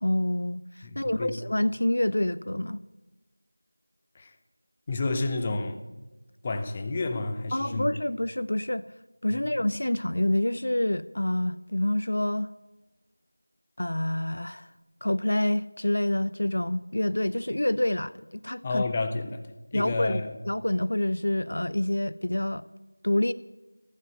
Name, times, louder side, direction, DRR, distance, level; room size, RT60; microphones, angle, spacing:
voice 1, 0.0-2.8 7.5-8.8 9.2-12.5 13.8-14.7 15.0-18.1 18.4-18.8 19.7-22.6 23.0-23.3, left 1 dB, 55° left, 16 dB, 0.5 m, -27 dB
voice 2, 0.8-1.4 4.1-4.3 4.9-5.8 6.4-7.9 9.3-9.5 18.6-20.3, left 3 dB, 15° left, 8 dB, 0.7 m, -30 dB
15.0 x 10.5 x 7.6 m, 1.1 s
figure-of-eight pair, 175°, 0 cm